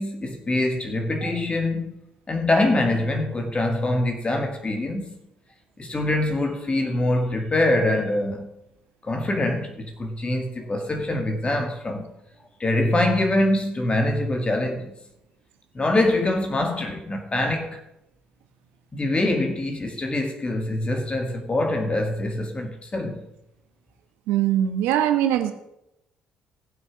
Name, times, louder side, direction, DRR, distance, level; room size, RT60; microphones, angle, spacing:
voice 1, 0.0-1.9 2.3-5.0 5.8-8.5 9.0-12.1 12.6-14.9 15.7-17.8 18.9-23.2, left 1 dB, 30° left, 2.0 m, -24 dB
voice 2, 24.3-25.5, right 11 dB, 75° right, 1.1 m, -22 dB
16.5 x 6.3 x 5.1 m
hypercardioid pair, 50°, 4 cm